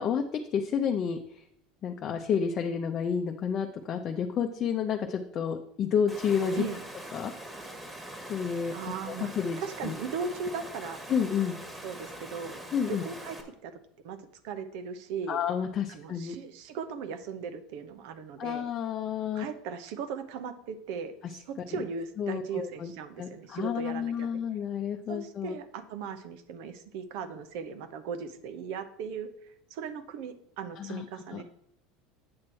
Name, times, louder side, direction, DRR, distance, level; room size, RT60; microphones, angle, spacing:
voice 1, 0.0-1.4 1.8-6.6 7.1-7.3 8.3-8.8 9.1-9.6 9.8-9.9 11.1-11.6 12.7-13.0 15.3-16.4 18.4-19.5 22.2-22.9 23.2-25.5 30.8-31.0 31.3-31.4, left 7 dB, 40° left, 4 dB, 0.6 m, -30 dB
Water, 6.1-13.4, right 1 dB, 15° right, 1.6 m, -43 dB
voice 2, 8.7-9.3 9.6-11.1 11.8-12.6 12.9-13.8 14.0-15.4 15.9-18.7 19.3-24.3 25.1-29.3 29.7-31.4, right 6 dB, 70° right, 10 dB, 0.9 m, -38 dB
8.6 x 6.0 x 4.4 m, 0.71 s
supercardioid pair, 115°, 0 cm